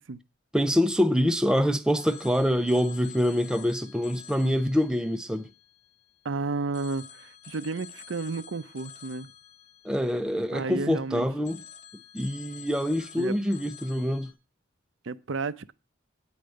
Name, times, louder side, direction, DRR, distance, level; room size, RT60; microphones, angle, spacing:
voice 1, 0.5-5.5 9.8-11.6 12.1-14.3, equal, 5° right, 0.5 m, -25 dB
Telephone, 2.0-6.2 6.7-11.0 11.4-14.3, left 8 dB, 35° left, 1.1 m, -49 dB
voice 2, 6.2-9.3 10.5-11.3 13.2-13.3 15.0-15.7, right 3 dB, 70° right, 0.6 m, -32 dB
9.4 x 5.2 x 7.6 m
head